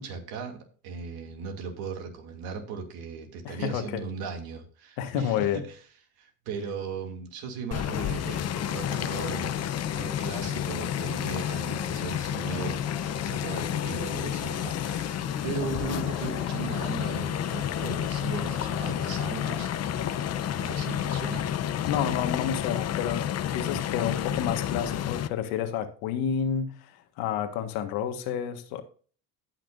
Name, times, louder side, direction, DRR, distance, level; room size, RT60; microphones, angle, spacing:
voice 1, 0.0-5.8 6.2-12.9 13.3-19.7 20.6-21.5, right 5 dB, 80° right, 2.7 m, -37 dB
voice 2, 3.4-4.0 5.0-5.6 21.9-28.8, left 8 dB, 85° left, 1.7 m, -30 dB
sound 1, 7.7-25.3, left 10 dB, 45° left, 0.7 m, -30 dB
sound 2, 7.7-21.3, equal, ahead, 0.9 m, -46 dB
17.5 x 6.1 x 2.6 m
cardioid pair, 115°, 36 cm